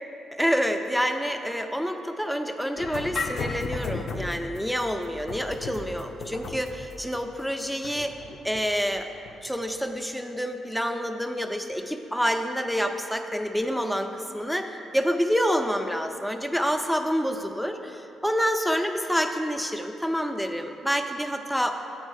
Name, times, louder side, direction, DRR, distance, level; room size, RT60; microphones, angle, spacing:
voice 1, 0.4-8.1 8.4-9.1 9.4-21.7, equal, ahead, 6 dB, 0.5 m, -27 dB
sound 1, 2.8-9.5, left 4 dB, 55° left, 0.6 m, -36 dB
7.3 x 4.6 x 6.3 m, 2.8 s
cardioid pair, 90°, 0 cm